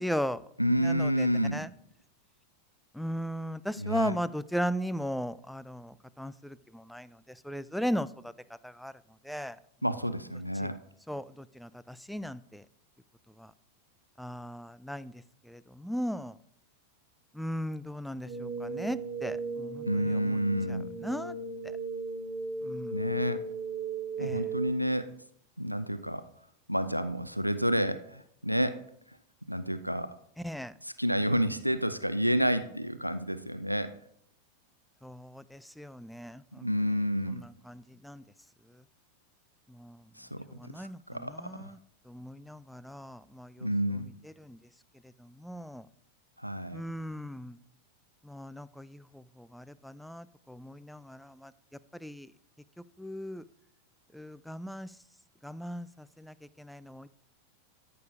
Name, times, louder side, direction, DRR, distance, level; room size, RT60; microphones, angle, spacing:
voice 1, 0.0-0.5 0.8-1.7 2.9-7.2 7.4-8.3 8.6-8.9 9.2-9.6 10.6-10.7 11.1-12.6 13.4-13.5 14.2-15.1 15.5-16.3 17.3-20.4 20.7-21.4 22.6-23.0 24.2-24.5 30.4-30.7 35.0-36.9 37.3-38.2 39.7-40.0 40.5-41.8 42.1-43.7 44.4-44.6 45.2-45.9 46.7-47.6 48.2-51.5 52.0-52.3 53.0-53.4 54.1-54.9 55.4-57.1, equal, ahead, 17 dB, 0.3 m, -37 dB
voice 2, 0.6-1.6 3.8-4.2 9.8-10.8 19.9-20.9 22.9-23.4 24.2-25.1 25.6-26.3 26.7-28.8 29.5-30.2 30.8-33.9 36.6-37.4 40.2-40.4 40.8-41.7 43.6-44.1 46.4-46.8, equal, 90° right, 12 dB, 0.4 m, -29 dB
sound 1, 18.2-24.7, right 3 dB, 80° left, 2.3 m, -36 dB
13.5 x 6.9 x 2.5 m, 0.71 s
figure-of-eight pair, 90°, 0 cm